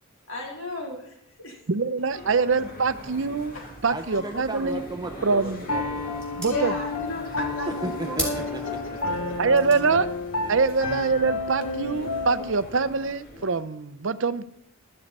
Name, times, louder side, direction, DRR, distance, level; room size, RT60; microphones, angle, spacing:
voice 1, 0.3-1.6 2.1-2.3 3.5-3.7 6.4-8.3 9.3-9.4, left 2 dB, 65° left, 0 dB, 3.6 m, -35 dB
voice 2, 1.7-3.6 3.8-4.8 5.2-5.6 6.4-6.7 9.4-10.1 10.5-14.5, right 4 dB, 60° right, 14 dB, 0.6 m, -24 dB
sound 1, 2.0-13.6, left 1 dB, 40° left, 2.3 m, -42 dB
voice 3, 3.9-6.5 7.7-8.6 10.4-10.6, right 2 dB, 20° right, 4 dB, 0.6 m, -35 dB
Piano, 5.7-12.5, left 2 dB, 90° left, 1.6 m, -31 dB
sound 2, 8.1-12.0, right 1 dB, 5° left, 3.0 m, -40 dB
13.0 x 12.0 x 4.2 m, 0.75 s
head